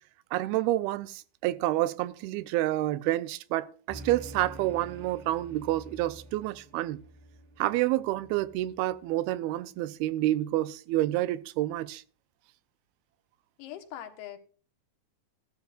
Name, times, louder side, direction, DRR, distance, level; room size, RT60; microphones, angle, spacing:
voice 1, 0.3-7.0 7.6-12.0, right 15 dB, 90° right, 2.6 m, -29 dB
sound 1, 3.9-9.5, right 1 dB, 50° right, 3.1 m, -48 dB
voice 2, 13.6-14.4, left 11 dB, 85° left, 3.3 m, -41 dB
16.5 x 12.5 x 2.4 m
omnidirectional pair, 4.3 m